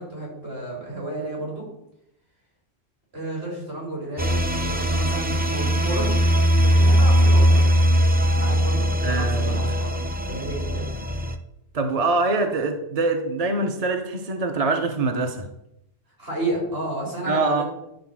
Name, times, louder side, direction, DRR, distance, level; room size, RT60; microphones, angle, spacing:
voice 1, 0.0-1.7 3.1-6.1 6.5-7.7 8.4-10.8 16.2-17.6, right 1 dB, 65° right, -3 dB, 4.6 m, -32 dB
sound 1, 4.2-11.3, equal, 15° right, 0.4 m, -20 dB
voice 2, 9.0-9.8 11.7-15.5 17.3-17.6, right 3 dB, 40° right, 5 dB, 0.8 m, -24 dB
10.0 x 4.1 x 7.3 m, 0.83 s
omnidirectional pair, 1.1 m